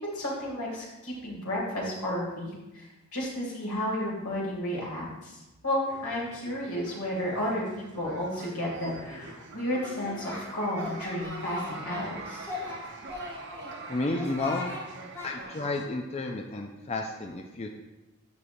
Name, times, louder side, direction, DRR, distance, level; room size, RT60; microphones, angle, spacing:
voice 1, 0.0-12.5, left 1 dB, 85° left, -4 dB, 2.6 m, -32 dB
sound 1, 5.9-15.9, right 3 dB, 50° right, 0.8 m, -44 dB
Singing, 9.7-10.4 10.7-12.1 12.4-13.7 14.1-14.8 15.1-15.3, left 2 dB, 10° left, 1.2 m, -39 dB
voice 2, 13.9-14.7 15.2-17.7, left 2 dB, 30° left, 2 dB, 0.4 m, -31 dB
12.0 x 4.9 x 2.6 m, 1.0 s
head